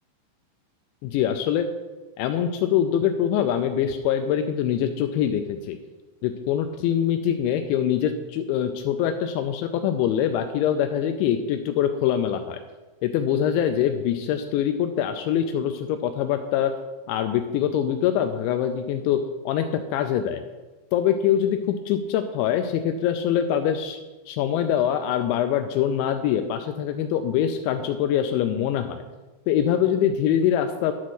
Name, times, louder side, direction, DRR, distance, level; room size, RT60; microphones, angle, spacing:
voice 1, 1.0-1.7 2.2-5.8 6.2-12.6 13.0-16.7 17.1-19.7 19.9-20.4 20.9-24.0 24.3-29.0 29.5-30.9, left 9 dB, 90° left, 7 dB, 2.6 m, -24 dB
12.0 x 4.2 x 6.3 m, 1.2 s
omnidirectional pair, 5.8 m